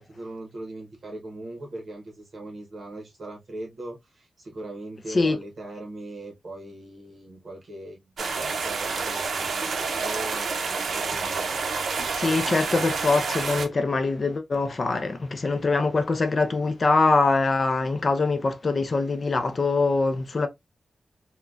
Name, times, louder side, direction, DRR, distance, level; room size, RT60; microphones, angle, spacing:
voice 1, 0.0-11.5, right 2 dB, 50° right, 0.8 m, -40 dB
sound 1, 8.2-13.7, right 4 dB, 90° right, 0.5 m, -28 dB
voice 2, 12.2-20.5, left 3 dB, 40° left, 0.4 m, -23 dB
3.6 x 2.1 x 2.3 m
wide cardioid pair, 180°, 0 cm